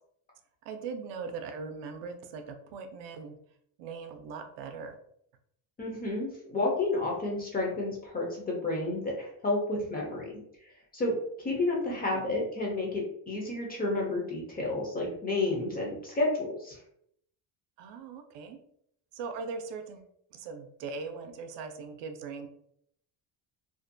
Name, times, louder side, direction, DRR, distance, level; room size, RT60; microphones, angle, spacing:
voice 1, 0.6-3.4 3.8-5.0 11.7-12.3 17.8-18.6 19.1-20.0 20.3-22.5, right 5 dB, 80° right, 6 dB, 0.5 m, -40 dB
voice 2, 5.8-10.3 10.9-16.8, left 2 dB, 25° left, -2 dB, 0.4 m, -31 dB
2.5 x 2.1 x 2.5 m, 0.70 s
cardioid pair, 175°, 42 cm